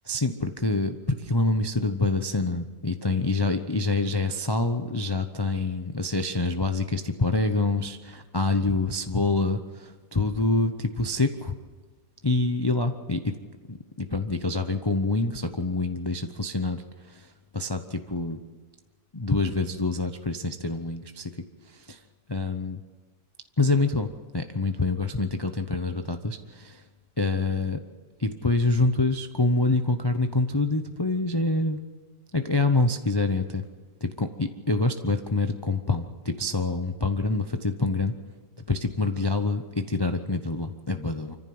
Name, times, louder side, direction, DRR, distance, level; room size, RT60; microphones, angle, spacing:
voice 1, 0.0-11.5 12.2-13.3 13.7-18.4 19.1-21.3 21.7-22.0 22.3-22.8 23.6-26.8 27.2-27.8 28.2-31.8 32.3-33.6 34.0-38.2 38.7-41.4, left 3 dB, 30° left, 7 dB, 0.4 m, -26 dB
25.5 x 15.0 x 7.8 m, 1.4 s
omnidirectional pair, 1.9 m